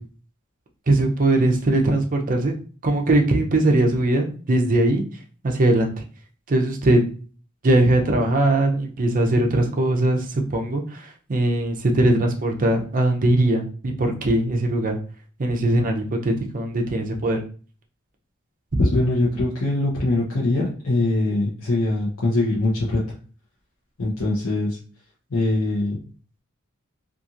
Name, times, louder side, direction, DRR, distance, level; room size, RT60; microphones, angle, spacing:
voice 1, 0.9-2.5 2.8-5.0 5.4-5.9 6.5-7.0 7.6-15.0 15.4-17.4 18.7-18.8, right 1 dB, 40° right, 3 dB, 0.5 m, -20 dB
voice 2, 18.8-23.0 24.0-24.8 25.3-26.0, left 2 dB, 75° left, -6 dB, 0.7 m, -22 dB
2.8 x 2.5 x 2.4 m, 0.40 s
head